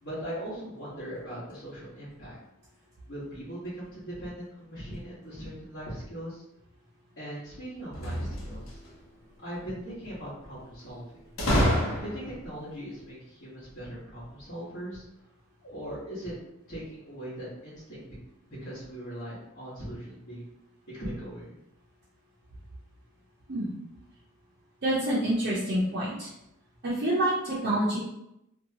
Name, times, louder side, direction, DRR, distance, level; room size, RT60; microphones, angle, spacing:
voice 1, 0.0-2.4 3.1-6.4 7.2-8.7 9.4-11.0 12.0-15.0 15.6-16.3 16.7-18.0 18.5-20.4 20.9-21.5, equal, 50° left, -12 dB, 1.1 m, -39 dB
sound 1, 7.9-8.9 11.4-12.4, equal, 70° left, 0.8 m, -27 dB
voice 2, 24.8-26.3 26.8-28.0, right 1 dB, 50° right, -8 dB, 0.5 m, -27 dB
2.8 x 2.2 x 2.7 m, 0.85 s
head